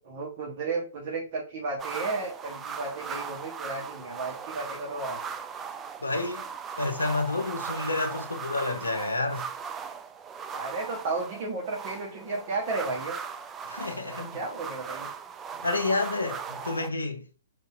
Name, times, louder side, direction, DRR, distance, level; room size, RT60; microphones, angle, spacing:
voice 1, 0.0-5.2 10.5-13.2 14.2-15.1, right 3 dB, 40° right, 1.1 m, -33 dB
sound 1, 1.8-16.9, right 6 dB, 15° right, 0.4 m, -38 dB
voice 2, 6.0-6.5 6.8-9.5 13.7-14.3 15.6-17.3, left 3 dB, 75° left, 0.6 m, -29 dB
4.7 x 4.1 x 2.4 m
figure-of-eight pair, 120°, 0 cm